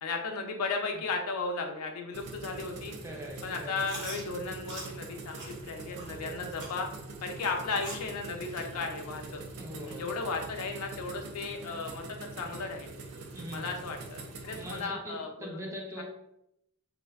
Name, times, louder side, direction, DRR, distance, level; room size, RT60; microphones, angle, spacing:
voice 1, 0.0-2.9 3.4-6.9 7.2-9.4 9.9-12.9 13.5-16.0, left 4 dB, 85° left, 3 dB, 0.4 m, -35 dB
sound 1, 2.1-14.8, right 3 dB, 90° right, 0.5 m, -44 dB
voice 2, 3.0-3.8 6.1-6.4 9.6-10.0 11.6-11.8 13.3-13.8 14.5-16.0, equal, 15° right, -2 dB, 0.5 m, -42 dB
Chewing mastication, 3.8-4.2 4.7-4.9 5.3-5.5 5.9-6.1 6.6-6.8 7.3-7.4 7.8-8.1 8.5-8.6 9.2-9.3 9.9-10.0 10.5-10.6, right 2 dB, 55° right, 0.7 m, -42 dB
2.5 x 2.1 x 2.3 m, 0.80 s
head